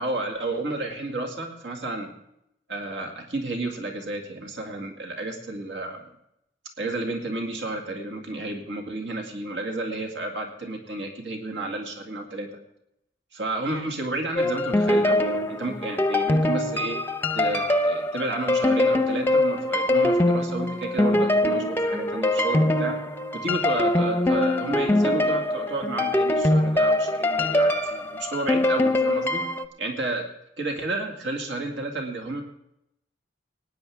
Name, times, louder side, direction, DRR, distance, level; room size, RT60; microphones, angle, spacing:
voice 1, 0.0-2.1 2.7-6.0 6.8-12.5 13.3-17.0 17.3-23.0 23.3-29.4 29.8-30.3 30.6-32.4, right 2 dB, 75° right, 2 dB, 2.1 m, -31 dB
sound 1, 14.4-29.6, left 1 dB, 15° left, 0.7 m, -23 dB
20.0 x 10.0 x 3.5 m, 0.80 s
head